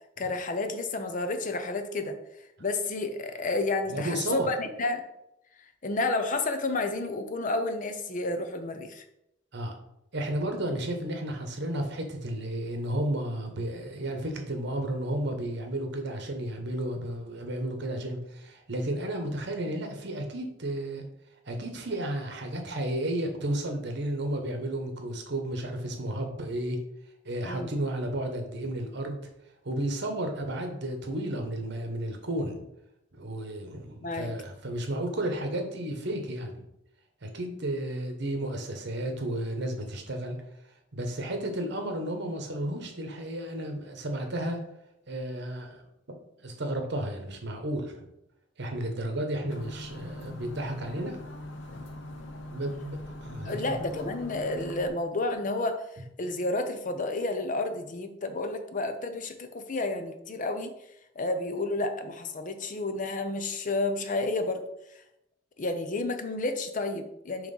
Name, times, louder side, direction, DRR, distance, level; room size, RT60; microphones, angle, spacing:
voice 1, 0.2-2.2 2.6-5.0 5.8-9.0 27.4-27.7 34.0-34.3 53.4-55.8 56.2-60.7 61.2-64.6 65.6-67.5, left 2 dB, 40° left, 7 dB, 0.6 m, -30 dB
voice 2, 3.9-4.5 9.5-9.7 10.1-21.0 21.4-26.8 27.2-29.2 29.6-32.6 33.1-36.6 37.2-40.4 40.9-44.6 45.1-45.8 46.4-48.1 48.6-51.2 52.5-53.6, right 1 dB, 60° right, 4 dB, 1.2 m, -32 dB
sound 1, 49.5-54.9, left 1 dB, 70° left, 0.9 m, -41 dB
6.0 x 3.1 x 5.4 m, 0.82 s
head